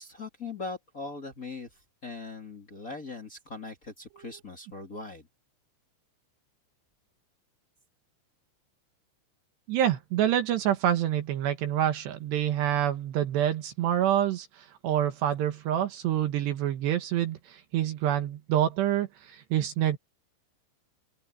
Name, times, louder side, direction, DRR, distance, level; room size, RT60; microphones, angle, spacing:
voice 1, 0.0-1.7 2.0-5.2, left 3 dB, 55° left, 0.9 m, -40 dB
voice 2, 9.7-20.0, right 11 dB, 70° right, 3.0 m, -27 dB
open air
omnidirectional pair, 5.8 m